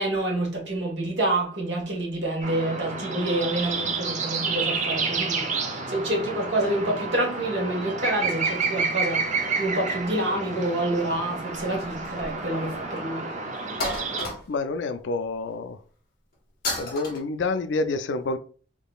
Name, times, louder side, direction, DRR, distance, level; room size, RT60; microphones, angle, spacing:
voice 1, 0.0-9.3 9.6-13.3, right 1 dB, 60° right, 1.5 m, -27 dB
sound 1, 2.4-14.3, right 4 dB, 40° right, 0.7 m, -30 dB
sound 2, 11.6-12.5 12.8-12.9 13.8-14.8 16.6-17.2, left 2 dB, 50° left, 1.4 m, -31 dB
voice 2, 14.5-15.8 16.8-18.4, left 3 dB, 70° left, 0.4 m, -28 dB
3.8 x 3.7 x 2.4 m
head